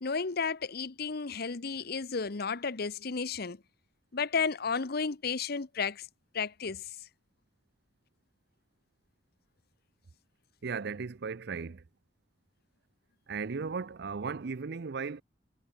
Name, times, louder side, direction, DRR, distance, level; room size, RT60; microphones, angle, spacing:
voice 1, 0.0-3.6 4.1-6.1 6.3-7.0, left 5 dB, 55° left, 0.9 m, -33 dB
voice 2, 10.6-11.8 13.3-15.2, right 5 dB, 60° right, 0.6 m, -36 dB
head